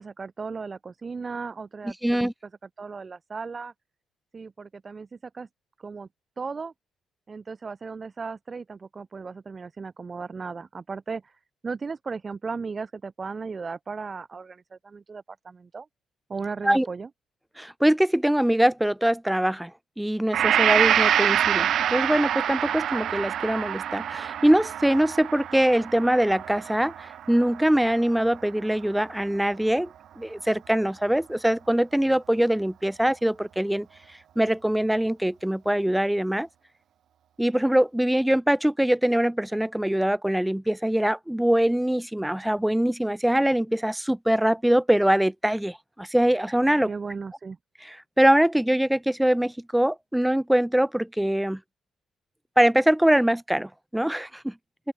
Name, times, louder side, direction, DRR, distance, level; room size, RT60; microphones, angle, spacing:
voice 1, 0.0-2.3 2.8-3.7 4.3-5.5 5.8-6.1 6.4-6.7 7.3-15.9 16.3-17.1 46.9-47.6, right 4 dB, 25° right, 2.6 m, -36 dB
voice 2, 2.0-2.3 16.6-16.9 17.6-33.9 34.4-36.5 37.4-46.9 47.8-51.6 52.6-54.5, right 1 dB, 5° right, 0.8 m, -23 dB
Gong, 20.3-28.4, right 10 dB, 55° right, 2.1 m, -26 dB
open air
cardioid pair, 165°, 0 cm